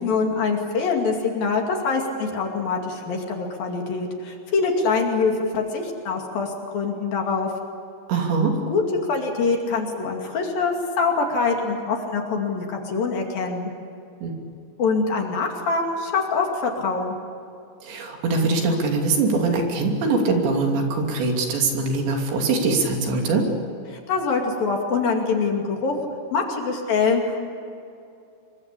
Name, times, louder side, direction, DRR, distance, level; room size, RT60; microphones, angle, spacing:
voice 1, 0.0-7.5 8.7-8.8 9.1-13.7 14.8-17.2 23.9-26.0 26.3-27.5, left 4 dB, 55° left, 2 dB, 3.9 m, -24 dB
voice 2, 8.1-8.5 14.2-14.3 17.8-23.4, right 3 dB, 70° right, 2 dB, 5.1 m, -22 dB
26.0 x 23.5 x 8.4 m, 2.5 s
omnidirectional pair, 5.4 m